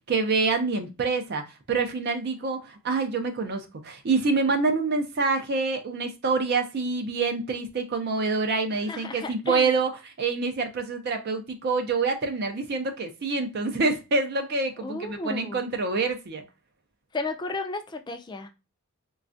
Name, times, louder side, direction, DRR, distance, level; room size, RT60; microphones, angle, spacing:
voice 1, 0.1-16.4, right 4 dB, 45° right, 0.4 m, -26 dB
voice 2, 8.7-9.7 14.8-15.6 17.1-18.5, left 2 dB, 20° left, 0.3 m, -33 dB
4.1 x 2.3 x 2.5 m
head